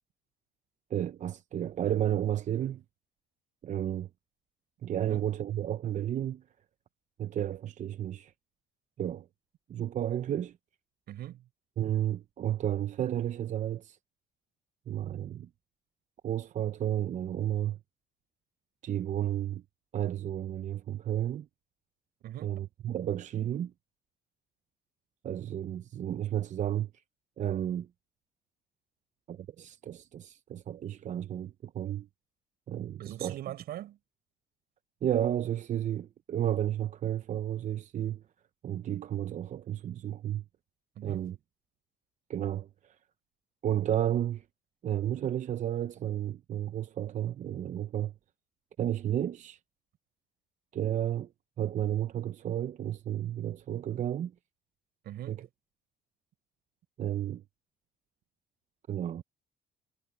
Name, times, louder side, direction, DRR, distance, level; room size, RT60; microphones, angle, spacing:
voice 1, 0.9-2.8 3.6-4.1 4.8-6.4 7.2-8.3 9.0-9.3 9.7-10.5 11.8-14.0 14.9-15.5 16.2-17.8 18.8-19.6 19.9-21.5 22.4-23.7 25.2-26.9 27.4-27.9 29.3-32.1 32.7-33.4 35.0-38.2 38.6-40.4 41.0-41.4 42.3-43.0 43.6-44.4 44.8-48.1 48.8-49.6 50.7-51.3 51.6-54.3 55.3-55.5 57.0-57.4 58.9-59.2, right 11 dB, 45° right, 0.7 m, -32 dB
voice 2, 11.1-11.5 22.2-22.6 33.0-34.0 41.0-41.3 55.0-55.5, right 13 dB, 70° right, 5.6 m, -41 dB
cardioid pair, 110°, 17 cm